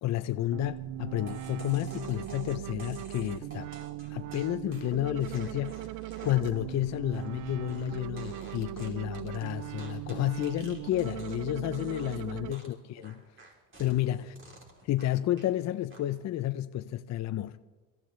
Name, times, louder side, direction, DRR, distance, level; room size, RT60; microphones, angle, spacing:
voice 1, 0.0-3.7 4.1-5.9 6.2-13.2 13.8-14.3 14.8-17.6, left 13 dB, 55° left, 0.6 m, -31 dB
sound 1, 0.5-12.5, right 15 dB, 65° right, 0.5 m, -39 dB
sound 2, 1.3-11.5 11.7-12.2 12.5-15.5 15.9-16.3, right 2 dB, 35° right, 3.3 m, -51 dB
27.5 x 13.5 x 3.2 m
cardioid pair, 95°, 34 cm